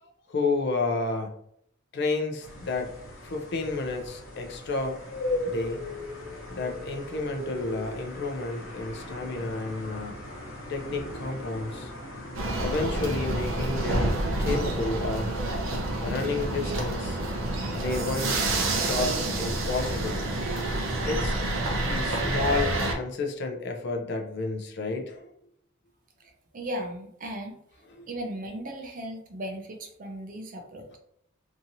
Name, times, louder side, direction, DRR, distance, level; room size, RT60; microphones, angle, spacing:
voice 1, 0.0-1.4 1.9-2.9 3.2-5.0 5.5-5.8 6.5-10.2 10.7-11.9 12.6-15.4 16.0-17.2 17.7-18.5 18.9-20.2 21.0-21.4 21.8-25.3 27.9-28.1, left 3 dB, 55° left, 4 dB, 0.5 m, -31 dB
sound 1, 2.4-12.6, left 1 dB, 80° left, 1.0 m, -38 dB
sound 2, 12.3-22.9, right 2 dB, 80° right, 0.7 m, -28 dB
voice 2, 26.2-27.6 28.1-31.0, right 1 dB, 40° right, 4 dB, 0.5 m, -37 dB
2.9 x 2.6 x 2.6 m, 0.72 s
head